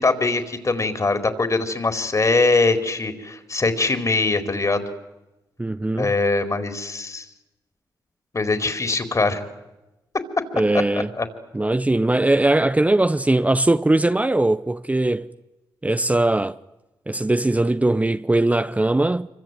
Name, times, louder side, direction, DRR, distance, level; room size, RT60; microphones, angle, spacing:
voice 1, 0.0-4.9 6.0-7.2 8.3-9.4 11.2-11.3, left 3 dB, 40° left, 4.4 m, -22 dB
voice 2, 5.6-6.1 10.5-11.1 11.5-15.3 15.8-16.6 17.1-19.3, right 2 dB, 15° right, 0.9 m, -20 dB
26.0 x 24.5 x 9.4 m
supercardioid pair, 50°, 8 cm